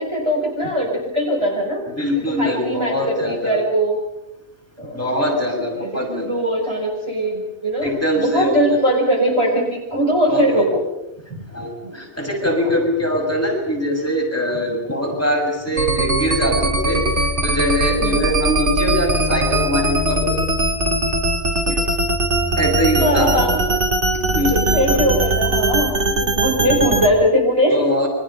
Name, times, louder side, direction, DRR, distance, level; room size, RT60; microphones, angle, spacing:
voice 1, 0.0-1.8 2.3-4.0 4.8-5.1 5.7-10.8 11.8-12.0 12.4-12.5 14.8-15.0 18.0-18.3 21.7-21.8 23.0-23.8 24.5-28.0, equal, 25° right, -1 dB, 5.7 m, -21 dB
voice 2, 1.9-3.6 4.9-6.4 7.8-8.6 9.9-10.0 10.3-10.7 11.3-20.4 22.5-23.5 24.3-25.0 26.6-26.8 27.7-28.1, equal, 10° left, 0 dB, 6.3 m, -22 dB
sound 1, 15.8-27.1, right 1 dB, 85° right, 3.1 m, -20 dB
29.0 x 25.5 x 5.7 m, 0.91 s
omnidirectional pair, 1.2 m